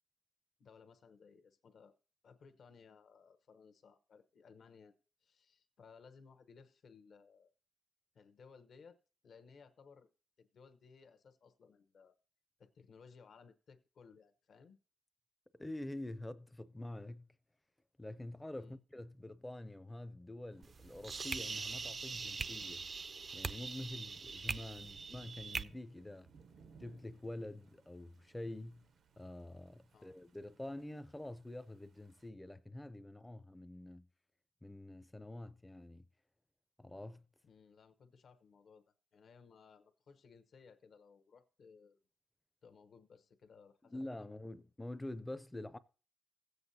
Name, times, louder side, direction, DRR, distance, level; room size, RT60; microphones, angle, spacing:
voice 1, 0.6-1.9 2.2-4.9 5.2-7.5 8.1-9.0 9.2-10.1 10.4-12.2 12.6-14.8 18.6-18.8 24.7-24.9 29.9-30.2 37.4-42.0 42.6-44.3, left 5 dB, 65° left, 0.9 m, -61 dB
voice 2, 15.6-17.3 18.0-22.9 23.3-26.3 26.8-28.8 29.2-34.1 34.6-36.0 36.8-37.2 43.8-45.8, left 1 dB, 10° left, 0.5 m, -47 dB
Thunder / Rain, 20.5-32.3, right 5 dB, 80° right, 0.7 m, -65 dB
sound 1, 20.6-25.6, right 4 dB, 40° right, 0.4 m, -42 dB
16.0 x 7.9 x 2.7 m
cardioid pair, 115°, 0 cm